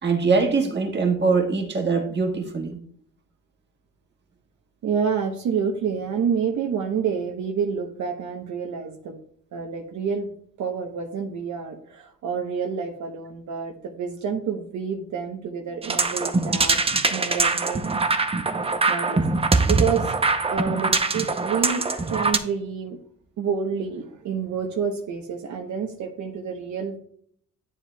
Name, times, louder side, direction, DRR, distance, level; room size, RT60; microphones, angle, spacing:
voice 1, 0.0-2.8, right 4 dB, 35° right, 3 dB, 1.6 m, -22 dB
voice 2, 4.8-9.2 9.5-10.3 10.6-16.8 17.1-18.1 18.9-19.2 19.7-20.1 20.5-23.0 23.4-27.0, right 6 dB, 70° right, 3 dB, 0.9 m, -28 dB
sound 1, 15.8-22.4, right 3 dB, 20° right, 0.7 m, -23 dB
10.5 x 7.4 x 2.3 m, 0.65 s
cardioid pair, 90°, 30 cm